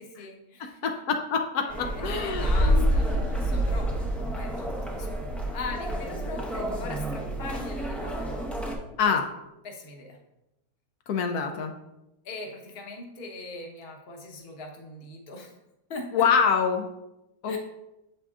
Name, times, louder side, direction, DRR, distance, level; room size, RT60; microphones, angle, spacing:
voice 1, 0.0-0.8 1.6-8.5 9.6-10.2 12.2-15.5 15.9-16.3 17.5-17.6, left 3 dB, 45° left, 2 dB, 1.0 m, -40 dB
voice 2, 0.6-2.9 9.0-9.2 11.1-11.7 16.1-16.9 17.4-17.6, left 6 dB, 75° left, 4 dB, 1.1 m, -26 dB
sound 1, 1.7-8.8, equal, ahead, 0.4 m, -28 dB
7.7 x 5.0 x 2.4 m, 0.92 s
omnidirectional pair, 1.7 m